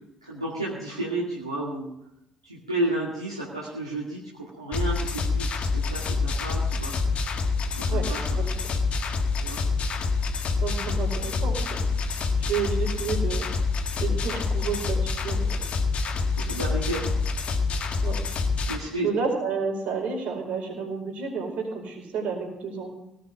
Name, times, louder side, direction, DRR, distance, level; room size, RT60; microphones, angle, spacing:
voice 1, 0.2-1.9 2.4-6.9 7.7-8.2 9.4-9.6 16.4-17.1 18.7-19.1, right 1 dB, 90° right, -7 dB, 2.4 m, -32 dB
sound 1, 4.7-18.8, left 4 dB, 45° left, 1.7 m, -26 dB
voice 2, 8.4-8.7 10.6-11.8 12.5-13.5 14.0-15.6 18.0-18.2 19.0-22.9, right 5 dB, 55° right, 0 dB, 4.8 m, -30 dB
18.5 x 6.6 x 9.6 m, 0.82 s
figure-of-eight pair, 50°, 3 cm